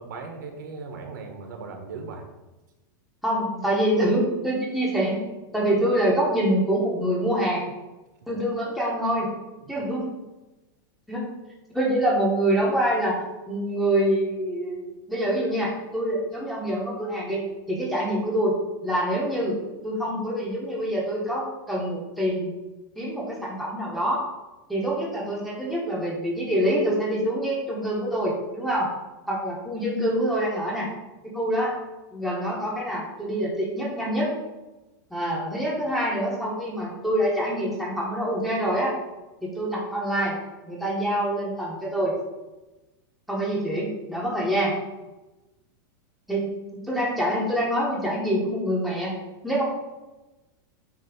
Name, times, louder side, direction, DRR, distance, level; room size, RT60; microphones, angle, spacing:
voice 1, 0.0-2.3 8.2-8.3 9.6-9.7, right 4 dB, 65° right, 4 dB, 1.4 m, -38 dB
voice 2, 3.2-5.2 5.5-7.6 8.3-9.3 9.7-10.2 11.1-11.3 11.7-13.2 13.5-14.8 15.1-18.5 18.8-19.6 19.8-22.5 23.0-24.2 24.7-28.9 29.3-30.9 31.2-31.7 32.1-34.3 35.1-38.9 39.4-40.4 40.7-42.1 43.3-44.7 46.3-49.1 49.4-49.6, right 1 dB, ahead, -5 dB, 1.1 m, -25 dB
8.5 x 3.0 x 6.0 m, 1.1 s
supercardioid pair, 180°, 11 cm